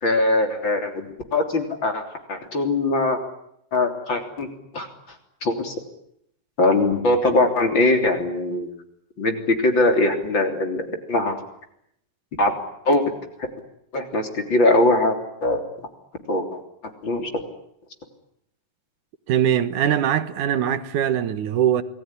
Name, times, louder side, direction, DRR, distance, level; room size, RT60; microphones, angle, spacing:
voice 1, 0.0-2.0 2.3-3.2 3.7-4.5 4.7-4.9 5.4-5.7 6.6-8.7 9.2-11.4 12.4-12.5 12.9-13.0 13.9-15.6 16.3-16.6 17.0-17.3, left 2 dB, 35° left, 3.8 m, -21 dB
voice 2, 19.3-21.8, right 9 dB, 65° right, 2.7 m, -21 dB
28.0 x 20.0 x 9.9 m
omnidirectional pair, 4.0 m